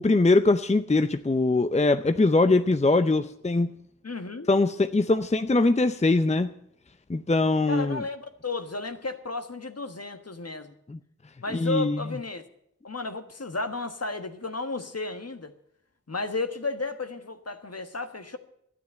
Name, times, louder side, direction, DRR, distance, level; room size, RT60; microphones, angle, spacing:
voice 1, 0.0-3.7 4.5-6.5 7.1-8.0 10.9-11.0 11.5-12.0, left 2 dB, 20° left, 10 dB, 0.6 m, -22 dB
voice 2, 4.0-4.5 7.7-10.7 11.4-12.4 12.8-15.5 16.1-18.4, left 3 dB, 55° left, 8 dB, 1.4 m, -33 dB
12.5 x 9.6 x 8.6 m, 0.71 s
wide cardioid pair, 45°, 30 cm